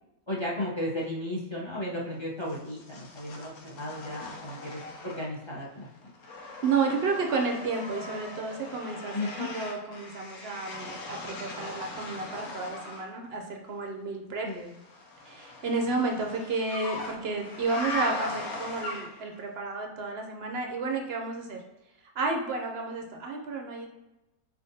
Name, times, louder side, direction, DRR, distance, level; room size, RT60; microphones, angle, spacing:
voice 1, 0.3-5.9 9.1-9.5 14.4-14.7, left 1 dB, 25° left, -4 dB, 0.6 m, -34 dB
sound 1, 2.5-5.5 5.8-13.1 14.7-19.4, left 2 dB, 75° left, 1.2 m, -40 dB
voice 2, 6.6-14.5 15.3-21.6 22.2-23.9, right 4 dB, 60° right, 2 dB, 0.7 m, -31 dB
4.2 x 3.5 x 2.7 m, 0.99 s
omnidirectional pair, 1.6 m